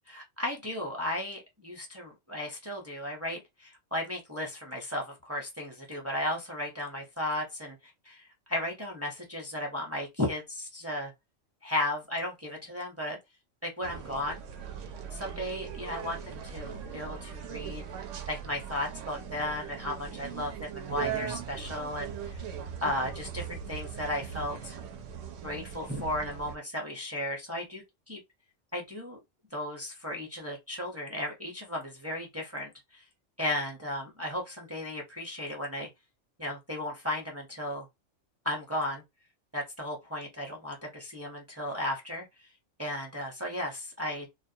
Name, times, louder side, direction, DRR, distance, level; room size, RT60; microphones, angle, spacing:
voice 1, 0.1-7.8 8.0-11.1 11.6-13.2 13.6-14.4 15.1-17.8 18.3-22.4 22.8-24.8 25.4-28.2 28.7-29.2 29.5-33.0 33.4-35.9 36.4-37.9 38.4-39.0 39.5-42.5 42.8-44.3, left 1 dB, 20° right, 0.5 m, -35 dB
sound 1, 13.8-26.6, right 8 dB, 80° right, 0.9 m, -40 dB
2.4 x 2.3 x 2.6 m
omnidirectional pair, 1.3 m